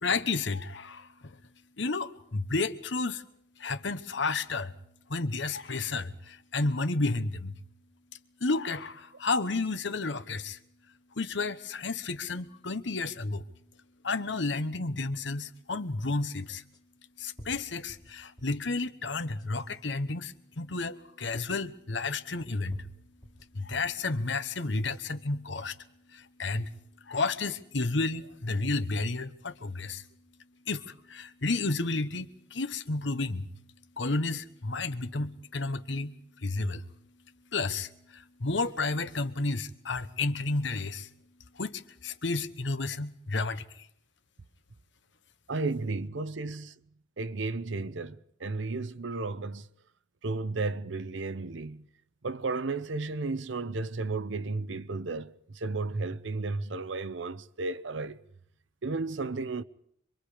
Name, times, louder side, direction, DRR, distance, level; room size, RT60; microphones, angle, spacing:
voice 1, 0.0-1.4 1.8-3.2 3.6-4.7 5.1-7.5 8.4-10.6 11.2-13.4 14.0-16.6 17.2-22.8 23.5-25.8 26.1-26.7 27.0-30.0 30.7-33.5 34.0-36.8 37.5-41.1 41.6-43.9, left 3 dB, 65° left, 1.1 m, -31 dB
sound 1, 15.4-15.5 16.7-16.8 17.4-18.7 19.2-19.8 20.7-20.8 22.1-22.2 22.7-24.0 24.5-25.1, equal, 20° left, 1.9 m, -51 dB
voice 2, 45.5-46.7 47.2-48.2 48.4-49.6 50.2-51.9 52.2-58.2 58.8-59.6, right 3 dB, 70° right, 0.8 m, -33 dB
26.0 x 23.5 x 5.0 m
head